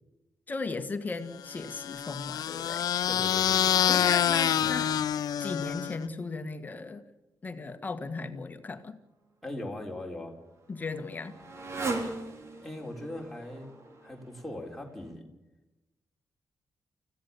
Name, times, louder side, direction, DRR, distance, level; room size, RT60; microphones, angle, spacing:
voice 1, 0.5-2.8 3.9-4.9 5.4-7.0 7.4-9.0 10.7-11.4, left 3 dB, 25° left, 9 dB, 1.6 m, -36 dB
sound 1, 1.5-6.1, left 10 dB, 80° left, 0.8 m, -27 dB
voice 2, 3.1-5.0 9.4-10.3 12.6-13.7 14.0-15.2, left 1 dB, 5° left, 0 dB, 3.7 m, -40 dB
Motorcycle, 9.7-15.1, right 3 dB, 45° right, 3.3 m, -39 dB
29.5 x 16.0 x 7.0 m, 1.0 s
wide cardioid pair, 175°, 7 cm